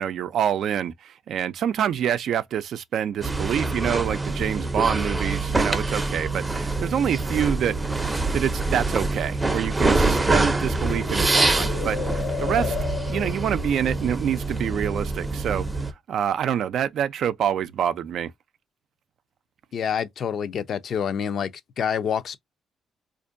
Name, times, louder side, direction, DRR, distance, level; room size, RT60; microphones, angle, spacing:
voice 1, 0.0-7.7 8.0-12.0 12.4-12.8 13.1-15.7 16.1-18.3, right 9 dB, 70° right, 0.4 m, -26 dB
sound 1, 3.2-15.9, right 2 dB, 20° right, 0.6 m, -25 dB
sound 2, 7.4-7.5 10.4-14.1, left 8 dB, 85° left, 1.4 m, -34 dB
voice 2, 19.7-21.5 21.8-22.4, left 7 dB, 60° left, 0.5 m, -27 dB
4.3 x 2.6 x 2.5 m
cardioid pair, 90°, 0 cm